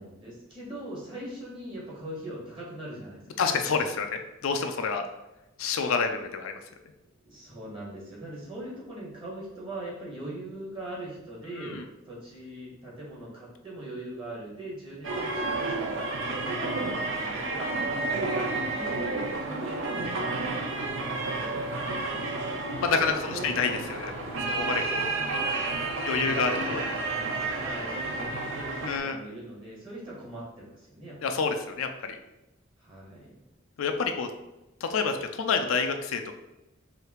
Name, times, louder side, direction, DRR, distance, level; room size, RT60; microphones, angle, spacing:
voice 1, 0.0-4.0 7.2-18.4 18.7-21.6 22.8-23.7 24.6-26.8 27.5-31.2 32.8-33.4, right 1 dB, 25° right, -5 dB, 1.5 m, -41 dB
voice 2, 3.4-4.1 4.4-5.1 5.6-6.5 11.5-11.8 22.8-25.0 26.0-26.8 28.8-29.2 31.2-32.2 33.8-34.3 34.8-36.3, left 5 dB, 80° left, 6 dB, 0.4 m, -28 dB
sound 1, 15.0-29.0, right 3 dB, 65° right, 0.7 m, -31 dB
4.8 x 2.8 x 3.0 m, 0.98 s
head